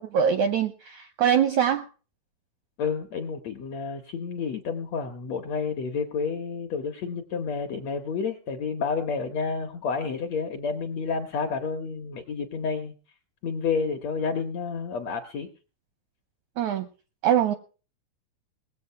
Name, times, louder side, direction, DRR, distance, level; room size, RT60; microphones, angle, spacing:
voice 1, 0.1-1.9 16.6-16.9 17.2-17.5, right 8 dB, 80° right, 9 dB, 1.7 m, -23 dB
voice 2, 2.8-12.9 13.4-15.5, left 5 dB, 70° left, 4 dB, 1.6 m, -30 dB
20.0 x 7.9 x 5.6 m, 0.37 s
omnidirectional pair, 4.2 m